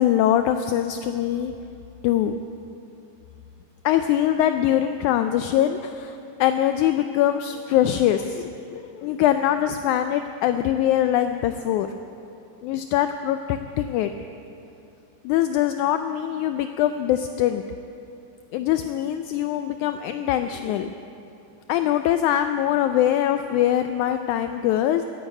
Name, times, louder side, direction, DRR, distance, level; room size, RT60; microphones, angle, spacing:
voice 1, 0.0-1.5 2.0-2.4 3.8-11.9 12.6-14.1 15.2-17.6 18.5-20.9 21.7-25.0, left 11 dB, 80° left, 8 dB, 1.9 m, -23 dB
14.0 x 11.5 x 9.0 m, 2.7 s
omnidirectional pair, 3.7 m